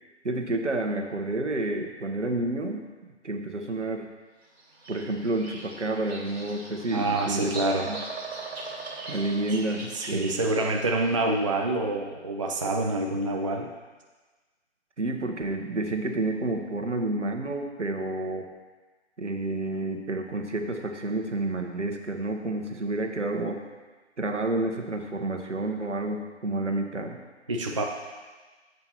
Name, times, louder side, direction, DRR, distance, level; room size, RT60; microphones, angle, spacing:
voice 1, 0.2-4.1 4.9-7.5 7.8-8.0 9.1-10.3 15.0-18.5 19.2-23.6 24.2-27.2, right 2 dB, 80° right, 4 dB, 1.2 m, -30 dB
Bird vocalization bird call bird song, 4.6-11.2, right 3 dB, 60° right, 1.9 m, -40 dB
voice 2, 6.9-7.9 9.9-13.7 27.5-27.8, right 2 dB, 30° right, 2 dB, 0.4 m, -27 dB
10.5 x 7.8 x 3.0 m, 1.3 s
figure-of-eight pair, 145°, 35 cm